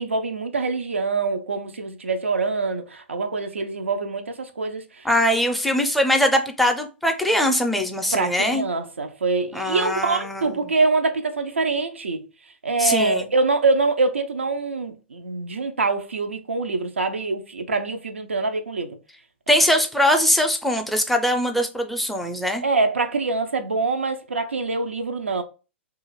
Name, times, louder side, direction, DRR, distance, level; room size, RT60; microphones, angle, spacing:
voice 1, 0.0-5.1 8.1-12.3 12.6-19.0 19.7-19.8 22.6-25.4, right 3 dB, 80° right, 0.4 m, -24 dB
voice 2, 5.0-8.6 9.5-10.6 12.8-13.3 19.5-22.6, equal, ahead, 0.4 m, -21 dB
2.5 x 2.3 x 3.0 m
figure-of-eight pair, 105°, 7 cm